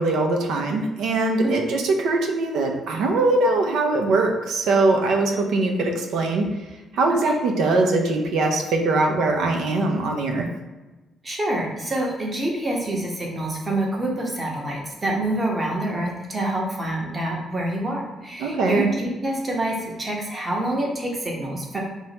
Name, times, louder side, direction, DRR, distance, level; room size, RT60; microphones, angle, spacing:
voice 1, 0.0-6.5 6.9-10.5 18.4-18.9, right 2 dB, 80° right, 2 dB, 0.5 m, -22 dB
voice 2, 11.2-21.8, right 1 dB, 25° right, -2 dB, 1.0 m, -26 dB
4.6 x 2.1 x 2.9 m, 1.1 s
cardioid pair, 90°, 0 cm